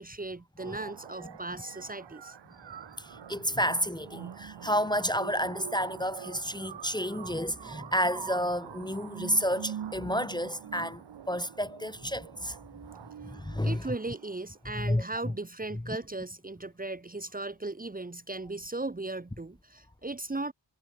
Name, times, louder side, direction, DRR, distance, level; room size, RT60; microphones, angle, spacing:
voice 1, 0.0-2.4 13.6-20.5, right 2 dB, 20° right, 1.2 m, -37 dB
voice 2, 0.6-0.9 3.0-12.6 13.2-13.9 14.7-15.3 15.9-16.0, equal, 10° left, 1.2 m, -31 dB
sound 1, 0.6-14.6, right 9 dB, 65° right, 1.4 m, -45 dB
cardioid pair, 70°, 46 cm